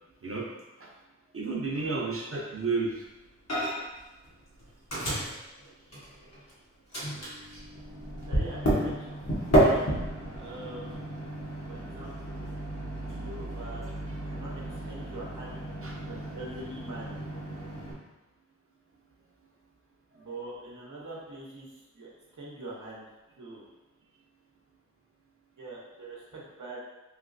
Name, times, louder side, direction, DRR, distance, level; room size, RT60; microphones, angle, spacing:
voice 1, 1.3-3.0 15.8-15.9, right 4 dB, 50° right, -2 dB, 0.6 m, -31 dB
Microwave oven, 3.5-4.0 4.2-6.5 6.9-17.9, right 1 dB, 60° left, 1.0 m, -31 dB
voice 2, 8.3-9.1 9.6-10.0 10.4-11.1 11.7-12.5 12.9-13.9 14.3-14.5 14.8-15.6 16.0-17.0 20.1-22.1 22.4-23.0 23.4-23.6 25.6-26.8, right 2 dB, 85° right, -5 dB, 0.9 m, -43 dB
3.2 x 3.0 x 2.5 m, 1.1 s
wide cardioid pair, 60°, 29 cm